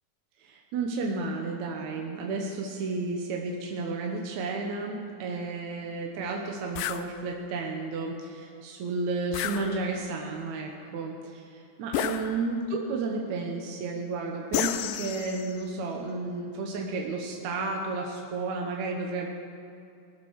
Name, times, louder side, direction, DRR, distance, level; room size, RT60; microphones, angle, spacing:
voice 1, 0.4-19.3, right 3 dB, 70° right, 0 dB, 2.3 m, -32 dB
sound 1, 6.8-7.1 9.3-10.2 11.9-12.7 14.5-15.6, left 11 dB, 90° left, 2.2 m, -32 dB
20.0 x 7.7 x 6.4 m, 2.6 s
omnidirectional pair, 3.7 m